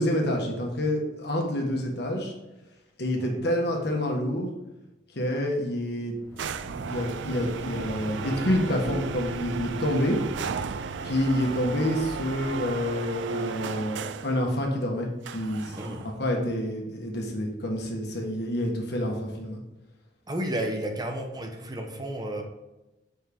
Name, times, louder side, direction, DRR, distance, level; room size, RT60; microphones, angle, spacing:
voice 1, 0.0-2.3 3.0-4.5 5.1-6.1 6.7-10.2 11.0-19.6, left 1 dB, 65° left, 1 dB, 1.6 m, -28 dB
sound 1, 6.1-13.1, equal, 15° left, 1.2 m, -42 dB
sound 2, 6.4-14.4 15.2-16.2, right 5 dB, 80° right, 0.4 m, -35 dB
voice 2, 15.7-16.1 20.3-22.4, right 1 dB, 20° right, 3 dB, 0.9 m, -32 dB
7.3 x 5.5 x 3.6 m, 1.0 s
head